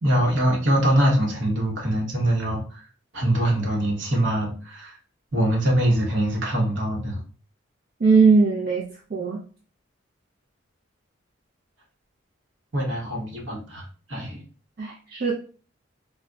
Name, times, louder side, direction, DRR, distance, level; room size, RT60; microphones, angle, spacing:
voice 1, 0.0-2.8 3.1-5.0 5.3-7.2 12.7-14.5, right 1 dB, 65° right, -1 dB, 0.9 m, -23 dB
voice 2, 8.0-8.8 9.1-9.4 14.8-15.3, right 4 dB, 45° right, -4 dB, 0.4 m, -19 dB
2.2 x 2.1 x 3.7 m, 0.40 s
head